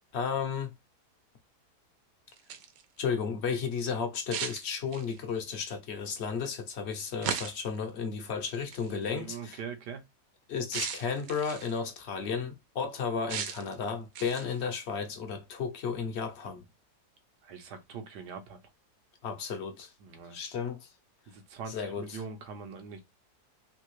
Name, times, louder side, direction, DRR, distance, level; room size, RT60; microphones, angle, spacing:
voice 1, 0.1-0.7 3.0-9.6 10.5-16.7 19.2-19.9 20.3-20.9 21.7-22.2, left 6 dB, 60° left, 0.7 m, -33 dB
sound 1, 2.3-2.8 4.3-5.3 7.2-7.8 8.7-8.9 10.7-11.8 13.3-13.7 14.2-14.6, right 7 dB, 70° right, 1.0 m, -36 dB
voice 2, 9.1-10.0 17.4-18.6 20.0-20.4 21.3-23.0, right 6 dB, 85° right, 1.4 m, -42 dB
3.4 x 2.7 x 3.0 m
omnidirectional pair, 1.8 m